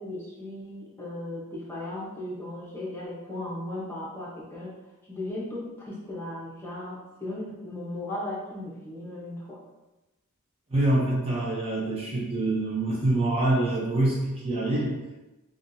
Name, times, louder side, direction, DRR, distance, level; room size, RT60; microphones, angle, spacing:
voice 1, 0.0-4.7 5.1-9.6, left 1 dB, 10° left, -6 dB, 1.0 m, -36 dB
voice 2, 10.7-15.0, right 2 dB, 25° right, -5 dB, 0.7 m, -25 dB
5.7 x 2.4 x 2.7 m, 1.0 s
head